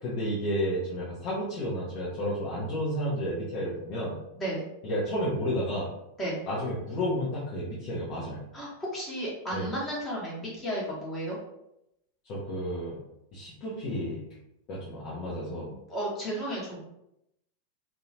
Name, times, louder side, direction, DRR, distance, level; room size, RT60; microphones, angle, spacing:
voice 1, 0.0-4.2 4.8-5.9 6.5-8.4 9.5-9.7 12.2-13.0 13.3-14.2 14.7-15.7, equal, 40° left, -7 dB, 0.7 m, -31 dB
voice 2, 8.5-11.4 15.6-16.8, right 1 dB, 20° left, -5 dB, 1.1 m, -33 dB
2.8 x 2.1 x 2.7 m, 0.83 s
figure-of-eight pair, 90°, 0 cm